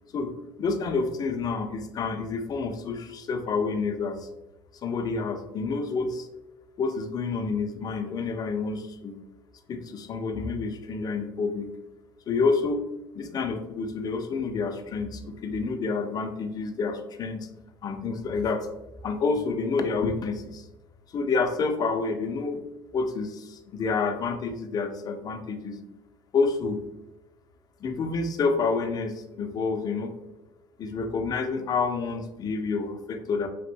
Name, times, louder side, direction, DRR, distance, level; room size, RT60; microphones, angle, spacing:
voice 1, 0.6-4.3 4.8-6.3 6.8-9.2 9.7-11.7 12.3-12.9 13.1-17.5 17.8-18.7 19.0-20.7 21.1-22.6 22.9-25.8 26.3-26.8 27.8-30.1 30.8-33.5, left 4 dB, 40° left, 6 dB, 0.5 m, -28 dB
2.9 x 2.5 x 3.4 m, 0.95 s
supercardioid pair, 90°, 11 cm